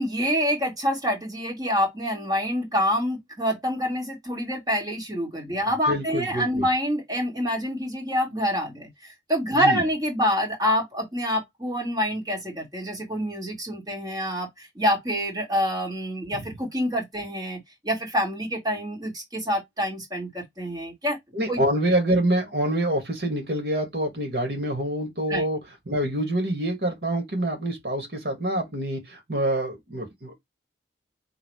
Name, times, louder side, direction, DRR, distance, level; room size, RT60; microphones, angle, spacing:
voice 1, 0.0-8.9 9.3-17.6 17.8-21.2 21.5-21.6 25.3-25.4, equal, 20° right, 2.0 m, -26 dB
voice 2, 5.9-6.7 9.5-9.8 16.3-16.5 21.3-25.6 25.9-30.3, right 1 dB, 65° right, 2.0 m, -26 dB
3.8 x 2.8 x 4.8 m
head